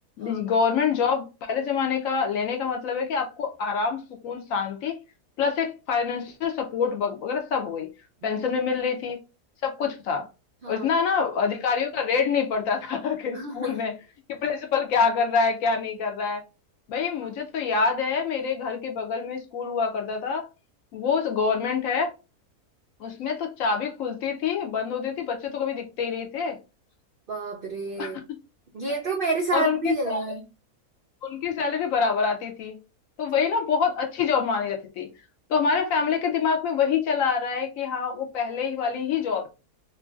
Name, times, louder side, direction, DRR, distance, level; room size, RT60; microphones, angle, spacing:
voice 1, 0.2-5.0 5.4-7.9 8.2-9.2 9.6-10.3 10.7-14.0 14.3-16.4 16.9-20.5 20.9-22.1 23.0-26.6 28.0-28.2 29.5-30.2 31.2-32.8 33.2-35.1 35.5-39.5, left 5 dB, 70° left, 0.8 m, -26 dB
voice 2, 13.2-13.7 27.3-28.2 28.7-30.4, right 3 dB, 80° right, 0.4 m, -29 dB
3.0 x 2.5 x 2.2 m
omnidirectional pair, 1.7 m